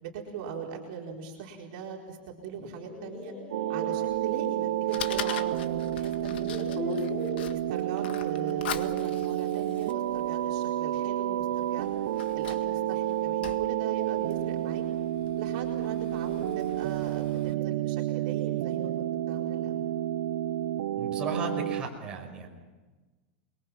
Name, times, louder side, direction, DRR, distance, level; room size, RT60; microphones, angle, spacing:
voice 1, 0.0-3.3 3.7-7.0 7.5-11.9 12.3-14.8 15.3-19.9, right 6 dB, 50° right, -2 dB, 4.4 m, -40 dB
sound 1, 2.6-4.0 5.4-5.5 6.2-7.6, left 3 dB, 20° left, 2.4 m, -37 dB
sound 2, 3.5-21.8, right 13 dB, 75° right, 0.8 m, -30 dB
Fire, 4.1-17.5, left 10 dB, 80° left, 1.8 m, -44 dB
voice 2, 21.0-22.5, right 3 dB, 15° right, -2 dB, 5.7 m, -35 dB
29.0 x 22.5 x 5.9 m, 1.3 s
supercardioid pair, 170°, 5 cm